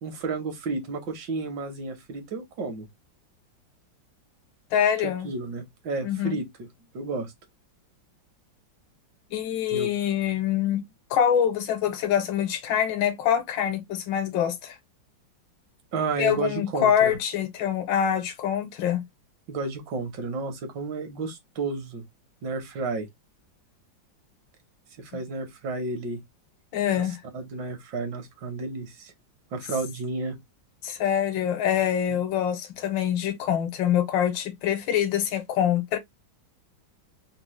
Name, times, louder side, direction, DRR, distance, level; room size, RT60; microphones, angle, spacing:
voice 1, 0.0-2.9 5.0-6.4 6.9-7.3 9.7-9.9 15.9-17.2 19.5-22.0 22.4-23.1 25.0-26.2 27.3-29.1 29.5-30.4 32.1-32.2, right 3 dB, 75° right, 1.6 m, -32 dB
voice 2, 4.7-5.3 6.0-6.4 9.3-10.8 11.1-14.8 16.2-19.0 25.1-25.2 26.7-27.2 30.8-36.0, left 9 dB, 80° left, 1.4 m, -25 dB
3.7 x 2.0 x 3.0 m
omnidirectional pair, 2.0 m